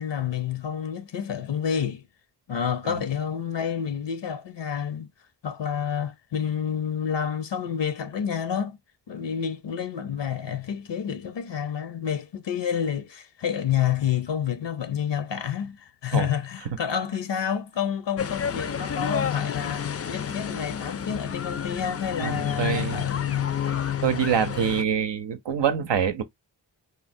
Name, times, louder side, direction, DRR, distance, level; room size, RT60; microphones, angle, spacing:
voice 1, 0.0-2.0 2.5-5.1 5.4-8.8 9.1-23.6, left 8 dB, 75° left, 0.6 m, -29 dB
sound 1, 18.2-24.8, left 8 dB, 35° left, 0.4 m, -29 dB
voice 2, 22.2-23.1 23.6-26.2, right 8 dB, 75° right, 0.6 m, -26 dB
3.6 x 2.1 x 2.5 m
wide cardioid pair, 55°, 44 cm